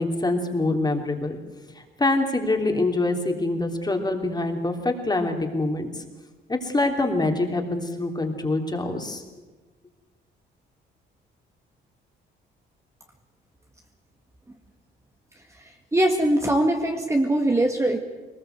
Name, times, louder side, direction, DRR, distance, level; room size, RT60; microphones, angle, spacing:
voice 1, 0.0-1.4 1.7-6.0 6.5-9.2, left 2 dB, 20° left, 3 dB, 3.2 m, -25 dB
voice 2, 15.9-18.0, right 1 dB, 15° right, 3 dB, 1.9 m, -21 dB
21.5 x 19.5 x 8.1 m, 1.2 s
cardioid pair, 90°, 20 cm